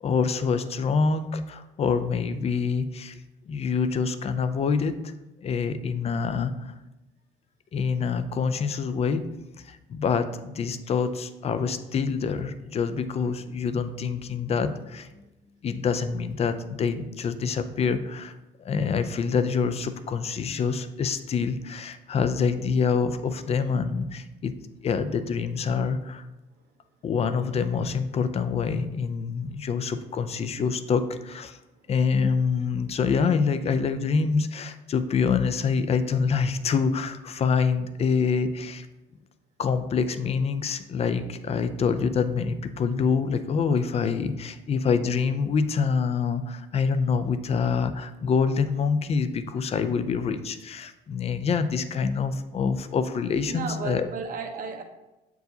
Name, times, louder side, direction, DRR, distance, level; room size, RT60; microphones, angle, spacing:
voice 1, 0.0-3.2 3.5-5.1 5.4-6.7 7.7-9.2 9.6-15.2 15.6-24.5 24.8-26.3 27.0-31.6 31.9-38.9 39.6-54.1, left 5 dB, 40° left, 11 dB, 0.5 m, -26 dB
voice 2, 53.5-54.8, right 5 dB, 55° right, 4 dB, 0.9 m, -33 dB
7.7 x 4.6 x 2.7 m, 1.0 s
cardioid pair, 110°, 17 cm